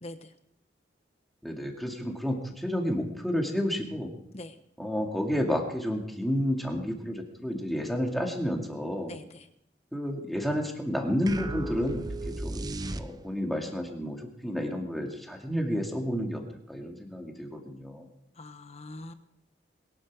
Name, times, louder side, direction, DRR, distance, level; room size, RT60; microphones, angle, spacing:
voice 1, 0.0-0.3 4.3-4.5 9.1-9.5 18.4-19.1, left 2 dB, 35° left, 8 dB, 1.3 m, -43 dB
voice 2, 1.4-4.1 4.8-9.1 9.9-12.0 12.4-12.6 12.9-14.2 14.4-16.4 16.7-18.1, equal, ahead, 1 dB, 2.3 m, -30 dB
sound 1, 11.3-13.5, right 2 dB, 20° right, 0.6 m, -35 dB
22.0 x 11.5 x 4.8 m, 0.76 s
head